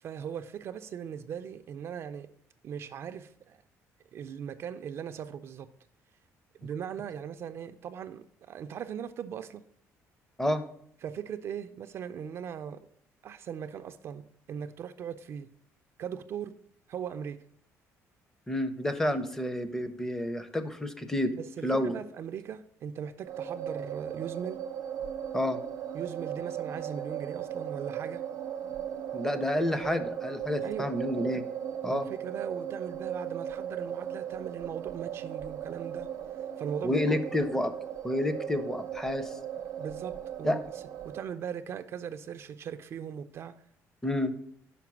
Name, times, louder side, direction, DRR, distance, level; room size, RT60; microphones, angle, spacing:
voice 1, 0.0-2.3 2.6-3.6 4.1-5.7 6.6-9.6 11.0-12.9 13.2-15.5 16.0-16.6 16.9-17.4 21.3-24.6 25.9-28.3 30.6-30.9 31.9-36.1 36.6-37.2 39.8-43.6, right 8 dB, 50° right, 9 dB, 0.4 m, -39 dB
voice 2, 18.5-21.3 21.6-22.0 25.3-25.6 29.1-31.4 31.8-32.1 36.8-37.7 38.0-39.3 40.4-40.6 44.0-44.3, left 1 dB, 10° left, 11 dB, 0.5 m, -29 dB
sound 1, 23.2-41.2, right 9 dB, 80° right, 0.7 m, -37 dB
5.8 x 4.5 x 5.9 m, 0.67 s
cardioid pair, 135°, 6 cm